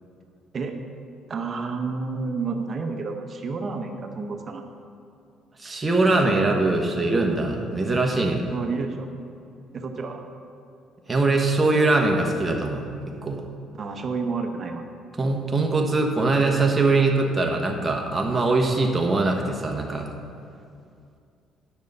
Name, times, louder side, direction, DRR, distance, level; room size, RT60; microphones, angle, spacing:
voice 1, 1.3-4.6 8.5-9.1 9.7-10.2 13.7-14.8, right 4 dB, 40° right, 4 dB, 1.0 m, -30 dB
voice 2, 5.6-8.4 11.1-12.9 13.2-13.4 15.2-20.1, right 3 dB, 20° right, 1 dB, 1.2 m, -22 dB
10.5 x 6.5 x 5.5 m, 2.4 s
cardioid pair, 105°, 0 cm